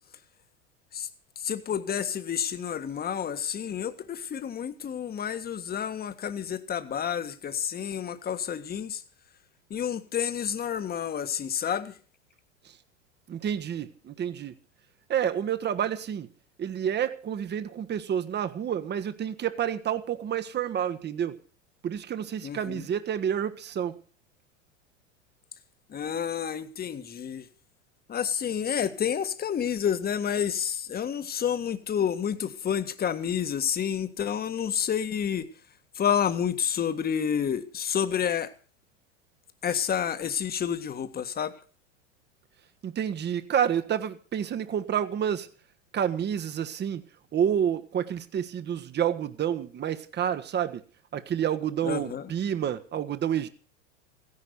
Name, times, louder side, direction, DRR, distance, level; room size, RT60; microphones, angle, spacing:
voice 1, 1.3-9.0 9.7-11.9 22.4-22.9 25.9-27.5 28.1-35.5 35.9-38.5 39.6-41.5 51.8-52.3, left 8 dB, 25° left, 1.7 m, -29 dB
voice 2, 13.3-14.5 15.1-16.3 16.6-21.4 21.8-24.0 42.8-45.5 45.9-47.0 47.3-50.8 51.1-53.5, right 9 dB, 25° right, 1.5 m, -29 dB
16.0 x 11.0 x 6.7 m
hypercardioid pair, 95°, 37 cm